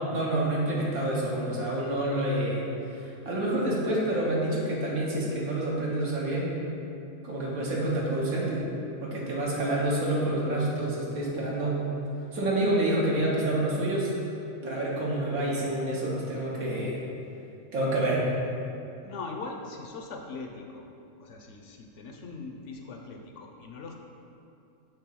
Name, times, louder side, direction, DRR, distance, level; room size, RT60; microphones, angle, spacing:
voice 1, 0.1-2.6 2.9-6.6 7.2-8.6 9.0-11.8 12.3-14.1 14.6-17.0 17.7-18.3, right 1 dB, 80° right, -5 dB, 1.8 m, -28 dB
voice 2, 19.0-20.9 21.2-24.0, left 3 dB, 65° left, 2 dB, 0.9 m, -41 dB
6.8 x 3.7 x 5.9 m, 2.6 s
omnidirectional pair, 1.5 m